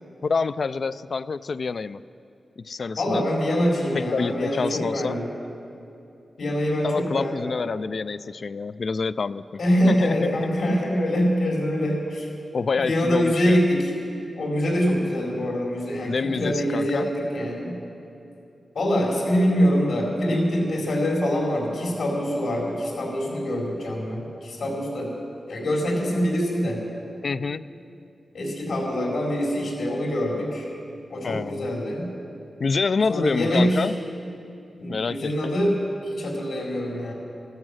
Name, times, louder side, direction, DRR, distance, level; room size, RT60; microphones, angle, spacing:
voice 1, 0.2-2.0 2.6-3.2 3.9-5.2 6.8-9.4 9.9-10.4 10.8-10.9 12.5-13.7 16.1-17.1 27.2-27.6 31.2-31.7 32.6-33.9 34.9-35.6, left 4 dB, 55° left, 15 dB, 0.3 m, -27 dB
voice 2, 3.0-5.3 6.4-7.5 9.6-12.3 12.7-13.9 14.4-17.8 18.7-25.1 25.5-26.8 28.3-30.6 31.1-32.1 33.1-33.9 34.8-37.1, equal, 80° left, -2 dB, 4.2 m, -24 dB
15.0 x 14.0 x 6.3 m, 2.7 s
wide cardioid pair, 125°, 0 cm